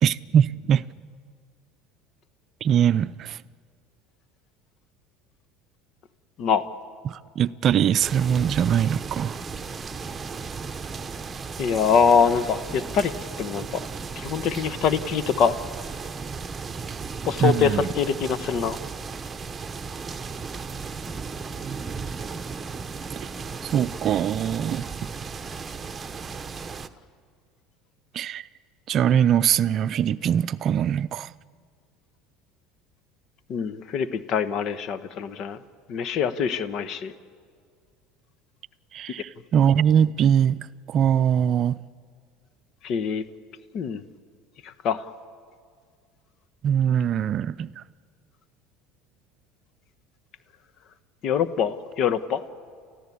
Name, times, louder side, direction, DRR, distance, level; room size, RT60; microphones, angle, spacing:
voice 1, 0.0-0.8 2.6-3.4 7.0-9.4 17.4-17.8 21.6-21.8 23.2-23.3 23.6-24.9 28.1-28.5 28.9-31.3 38.9-41.8 46.6-47.8, right 9 dB, 50° right, 0.5 m, -22 dB
sound 1, 8.0-26.9, right 5 dB, 25° right, 1.1 m, -35 dB
voice 2, 11.6-13.1 13.4-13.8 14.1-15.6 17.3-18.8 33.5-35.6 35.9-37.1 42.8-43.2 43.7-44.0 44.6-45.1 51.2-52.4, left 6 dB, 55° left, 1.1 m, -24 dB
29.5 x 14.5 x 8.6 m
supercardioid pair, 90°, 0 cm